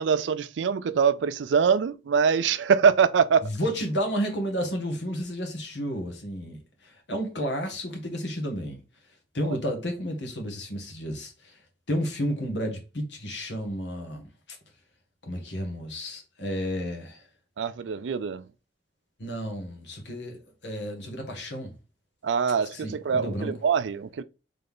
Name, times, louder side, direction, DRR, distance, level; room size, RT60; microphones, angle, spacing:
voice 1, 0.0-3.5 9.4-9.6 17.6-18.5 22.2-24.2, right 6 dB, 85° right, 0.4 m, -24 dB
voice 2, 3.4-8.8 9.3-11.6 11.9-14.6 15.3-17.2 19.2-21.7 22.7-23.5, equal, 75° left, 1.5 m, -32 dB
3.9 x 3.3 x 3.5 m
head